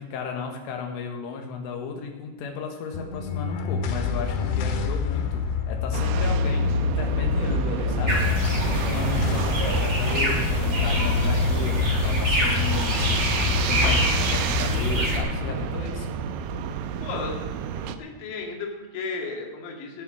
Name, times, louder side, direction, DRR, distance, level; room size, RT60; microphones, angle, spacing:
voice 1, 0.0-16.1, left 5 dB, 90° left, 2 dB, 4.1 m, -34 dB
sound 1, 2.9-17.5, left 6 dB, 70° left, 3.3 m, -27 dB
sound 2, 5.9-18.0, right 9 dB, 85° right, 3.2 m, -31 dB
sound 3, 8.1-15.2, right 1 dB, 35° right, 1.1 m, -27 dB
voice 2, 17.0-17.5 17.8-20.0, left 4 dB, 55° left, 0 dB, 3.4 m, -34 dB
19.5 x 7.7 x 6.1 m, 1.3 s
omnidirectional pair, 5.6 m